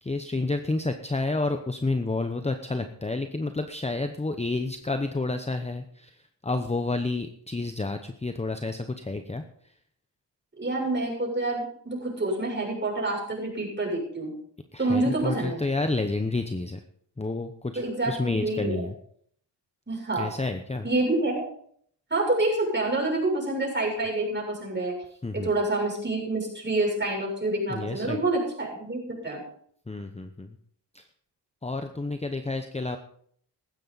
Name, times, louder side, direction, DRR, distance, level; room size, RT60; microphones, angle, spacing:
voice 1, 0.0-6.1 6.4-9.4 14.7-16.8 17.2-18.9 20.2-20.9 25.2-25.5 27.7-28.2 29.9-30.5 30.9-31.0 31.6-33.0, left 3 dB, 15° left, 7 dB, 0.9 m, -30 dB
voice 2, 10.6-14.3 14.8-15.6 17.7-18.9 19.9-20.3 20.8-21.4 22.1-24.9 25.3-29.4, right 2 dB, 25° right, -2 dB, 7.1 m, -27 dB
15.5 x 12.5 x 4.1 m, 0.63 s
cardioid pair, 85°, 44 cm